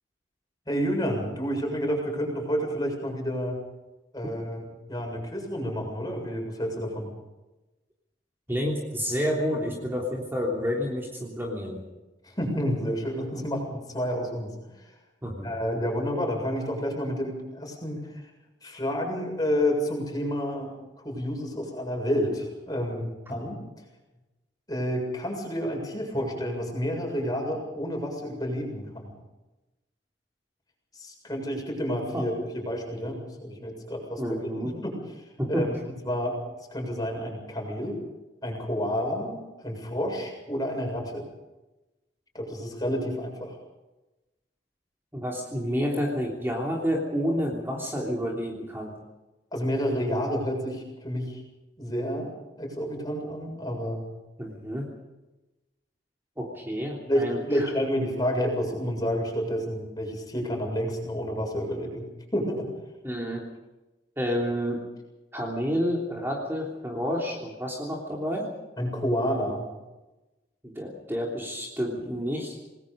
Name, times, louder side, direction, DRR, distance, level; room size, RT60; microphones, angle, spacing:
voice 1, 0.7-3.6 4.1-4.6 4.9-7.1 12.2-14.5 14.8-14.9 15.4-18.3 18.6-23.6 24.7-29.1 30.9-34.2 34.5-34.9 35.5-35.7 36.0-36.4 36.7-38.0 38.4-41.2 42.3-43.6 49.5-51.4 51.8-52.3 52.6-54.1 57.1-62.1 62.3-62.7 68.8-69.7, equal, 20° left, 1 dB, 7.4 m, -29 dB
voice 2, 8.5-11.8 15.2-15.6 32.1-32.2 34.2-34.7 35.4-35.7 45.1-49.0 54.4-54.9 56.4-57.7 63.0-63.5 64.2-64.8 65.3-68.5 70.6-72.5, equal, 15° right, -2 dB, 3.3 m, -29 dB
27.5 x 20.5 x 5.3 m, 1.0 s
head